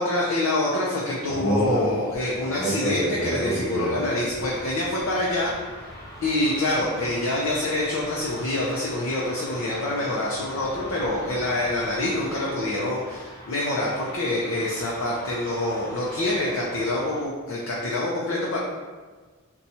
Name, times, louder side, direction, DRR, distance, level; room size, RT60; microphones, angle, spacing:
voice 1, 0.0-5.5 6.2-18.6, left 1 dB, 85° left, -3 dB, 0.5 m, -26 dB
sound 1, 1.1-17.2, right 1 dB, 15° left, 0.7 m, -35 dB
4.1 x 2.3 x 2.7 m, 1.4 s
head